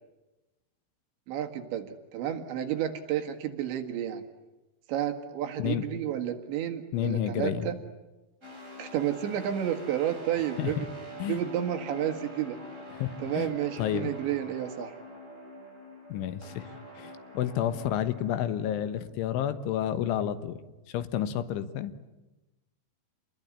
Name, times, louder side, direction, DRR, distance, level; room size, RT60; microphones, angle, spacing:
voice 1, 1.3-1.9 2.1-4.2 4.9-7.8 8.8-10.9 11.3-12.6 13.2-14.9, right 10 dB, 70° right, 5 dB, 3.9 m, -31 dB
voice 2, 6.9-7.7 10.6-10.9 11.2-11.4 12.9-13.5 13.8-14.1 16.1-16.7 17.0-20.6 20.9-21.9, left 11 dB, 80° left, 12 dB, 3.7 m, -30 dB
sound 1, 8.4-19.0, equal, 15° right, 7.7 m, -45 dB
29.0 x 21.0 x 9.7 m, 1.1 s
omnidirectional pair, 5.6 m